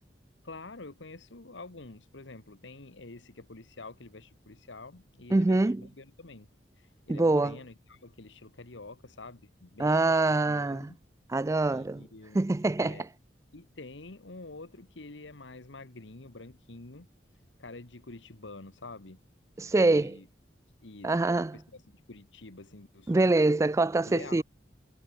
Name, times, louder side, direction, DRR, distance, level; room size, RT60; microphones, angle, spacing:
voice 1, 0.4-6.5 7.1-11.0 11.7-12.4 12.8-13.1 13.5-17.1 17.6-19.2 19.6-20.3 20.8-23.4 24.1-24.4, left 3 dB, 85° left, 1.5 m, -47 dB
voice 2, 5.3-5.8 7.1-7.6 9.8-10.9 11.3-12.1 12.3-13.1 19.6-20.2 21.0-21.6 23.1-24.4, right 2 dB, 15° right, 0.3 m, -25 dB
head